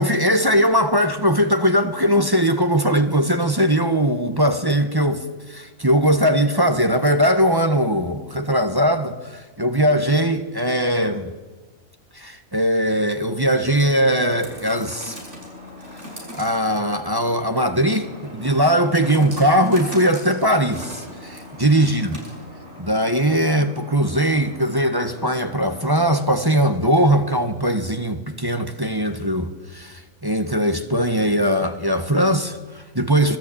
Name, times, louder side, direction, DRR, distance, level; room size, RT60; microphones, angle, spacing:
voice 1, 0.0-11.3 12.1-15.2 16.3-22.2 22.8-33.4, equal, 15° right, 1.4 m, -20 dB
sound 1, 12.8-26.5, left 1 dB, 55° right, 6.6 m, -40 dB
25.5 x 19.0 x 8.7 m
omnidirectional pair, 1.5 m